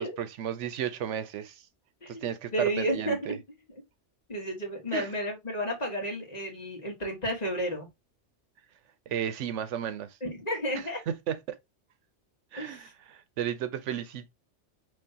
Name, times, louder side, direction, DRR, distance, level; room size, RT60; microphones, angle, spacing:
voice 1, 0.0-1.6 2.1-3.4 4.9-5.1 9.1-10.2 11.1-11.6 12.5-14.3, right 9 dB, 85° right, 1.0 m, -33 dB
voice 2, 2.5-3.4 4.3-7.9 10.2-11.0 12.6-12.9, equal, 35° left, 1.5 m, -32 dB
5.4 x 3.1 x 2.7 m
omnidirectional pair, 1.2 m